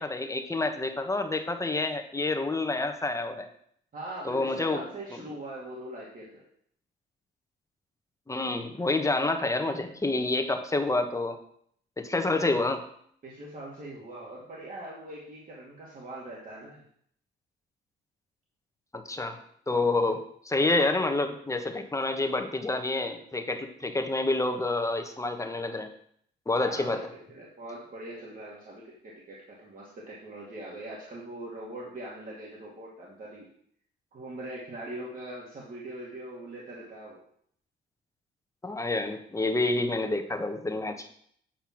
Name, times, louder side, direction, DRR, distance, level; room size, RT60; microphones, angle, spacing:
voice 1, 0.0-3.5 4.2-4.8 8.3-11.4 12.0-12.8 18.9-19.4 19.7-20.2 20.4-25.9 26.5-27.0 38.6-41.1, left 2 dB, 15° left, 6 dB, 1.2 m, -28 dB
voice 2, 3.9-6.4 12.3-12.5 13.2-16.8 26.5-33.5 34.1-37.2, right 1 dB, 45° right, -5 dB, 2.3 m, -42 dB
8.7 x 4.5 x 5.9 m, 0.65 s
cardioid pair, 90°, 20 cm